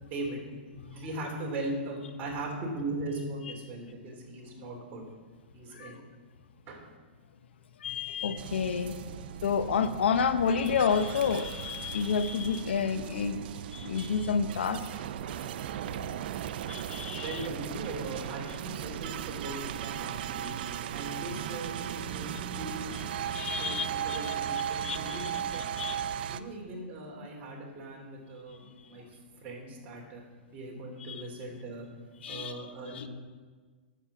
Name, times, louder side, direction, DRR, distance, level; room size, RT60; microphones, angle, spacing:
voice 1, 0.0-0.5 0.9-5.0 5.5-6.0 6.7-6.9 17.1-20.5 20.9-23.0 23.6-25.9 26.3-29.1 29.4-30.2 30.5-31.9 32.3-33.1, right 2 dB, 30° right, -1 dB, 3.1 m, -39 dB
voice 2, 7.8-9.0 9.4-13.4 13.7-14.9 16.7-17.5 20.4-20.5 23.3-24.3 24.8-25.4 25.7-26.0 31.1-31.2 32.2-33.1, left 6 dB, 85° left, 11 dB, 0.9 m, -30 dB
sound 1, 8.4-26.4, right 10 dB, 60° right, 0.5 m, -37 dB
10.0 x 7.4 x 7.3 m, 1.4 s
hypercardioid pair, 145°, 6 cm